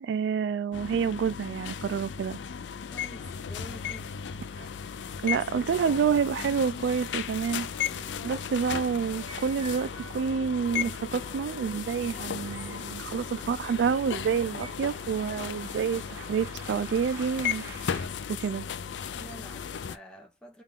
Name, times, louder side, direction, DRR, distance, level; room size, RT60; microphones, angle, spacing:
voice 1, 0.0-2.4 4.6-4.7 5.2-7.7 8.2-16.0 16.3-17.7 18.3-18.7, right 6 dB, 75° right, 0.3 m, -28 dB
sound 1, 0.7-20.0, left 8 dB, 90° left, 0.4 m, -36 dB
voice 2, 2.9-4.2 19.2-20.6, equal, 5° left, 0.8 m, -47 dB
sound 2, 7.7-14.7, right 2 dB, 30° right, 1.5 m, -49 dB
sound 3, 8.6-18.1, right 2 dB, 15° right, 1.5 m, -50 dB
3.6 x 2.4 x 3.6 m
head